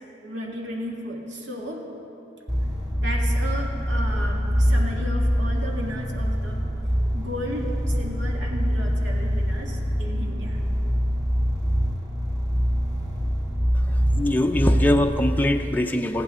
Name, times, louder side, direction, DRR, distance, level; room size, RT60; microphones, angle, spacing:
voice 1, 0.2-1.9 3.0-6.7 7.1-10.6, equal, 75° right, 0 dB, 1.8 m, -34 dB
sound 1, 2.5-15.2, equal, 20° right, 1.6 m, -24 dB
voice 2, 14.1-16.2, left 1 dB, 10° left, 4 dB, 0.5 m, -22 dB
20.5 x 15.0 x 3.7 m, 2.9 s
head